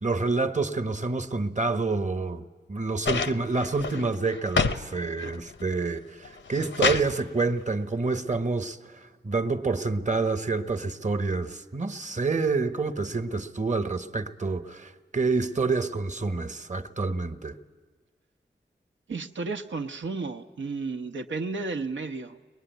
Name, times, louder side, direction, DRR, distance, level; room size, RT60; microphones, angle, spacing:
voice 1, 0.0-17.6, right 3 dB, 40° right, 1.1 m, -28 dB
sound 1, 3.0-4.8 5.2-5.7 6.2-7.1 8.3-8.4, left 5 dB, 85° left, 0.8 m, -28 dB
voice 2, 19.1-22.4, right 3 dB, 85° right, 0.9 m, -33 dB
22.5 x 20.5 x 9.3 m
cardioid pair, 40°, 19 cm